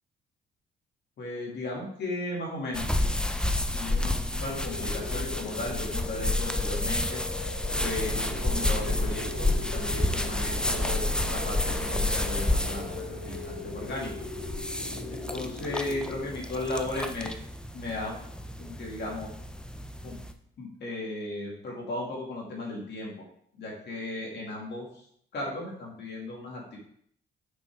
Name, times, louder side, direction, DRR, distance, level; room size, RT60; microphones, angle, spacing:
voice 1, 1.2-2.9 3.7-7.2 7.8-12.9 13.2-14.1 15.1-17.3 17.7-18.2 18.6-19.3 20.0-20.2 20.6-23.1 23.5-25.0 25.3-26.8, left 2 dB, 60° left, -3 dB, 2.6 m, -36 dB
sound 1, 2.7-20.3, left 1 dB, 5° left, 0.5 m, -30 dB
sound 2, 4.4-17.2, left 5 dB, 80° left, 1.2 m, -41 dB
sound 3, 7.7-17.7 18.1-18.2, right 3 dB, 55° right, 1.2 m, -44 dB
6.1 x 5.4 x 3.6 m, 0.66 s
cardioid pair, 90°, 20 cm